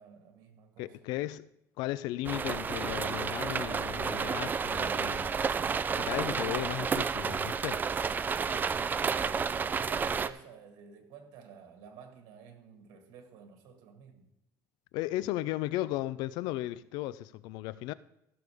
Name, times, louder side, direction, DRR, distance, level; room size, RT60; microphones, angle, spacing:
voice 1, 0.0-1.0 9.6-14.3, right 6 dB, 80° right, 1.9 m, -52 dB
voice 2, 0.8-1.5 1.8-5.3 6.0-7.8 14.9-17.9, left 16 dB, 85° left, 0.4 m, -35 dB
sound 1, 2.2-10.3, right 6 dB, 25° right, 0.4 m, -31 dB
15.5 x 6.7 x 3.5 m
cardioid pair, 120°, 7 cm